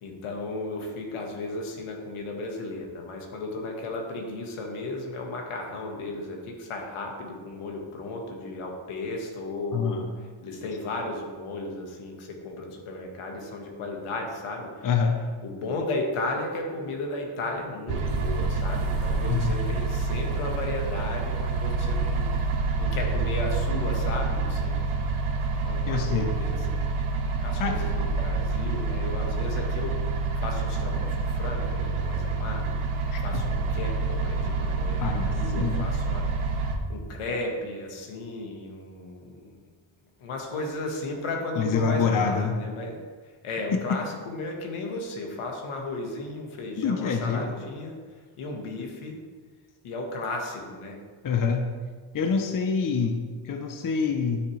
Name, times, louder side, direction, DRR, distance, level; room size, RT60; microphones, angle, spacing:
voice 1, 0.0-10.1 10.4-14.7 15.4-22.3 22.8-24.8 25.6-26.8 27.4-30.1 30.3-32.8 33.2-36.3 36.9-39.5 40.2-43.0 43.4-48.0 48.4-49.2 49.8-51.0, left 2 dB, 90° left, 1 dB, 1.7 m, -34 dB
voice 2, 9.7-10.1 14.8-15.2 19.3-19.6 25.9-26.3 27.6-27.8 33.1-33.4 35.0-35.9 41.6-42.5 43.7-43.9 46.8-47.6 51.2-51.7 52.1-54.4, left 5 dB, 40° left, 4 dB, 0.8 m, -26 dB
sound 1, 17.9-36.8, right 3 dB, 90° right, 1.2 m, -27 dB
10.0 x 6.6 x 3.3 m, 1.5 s
cardioid pair, 130°, 49 cm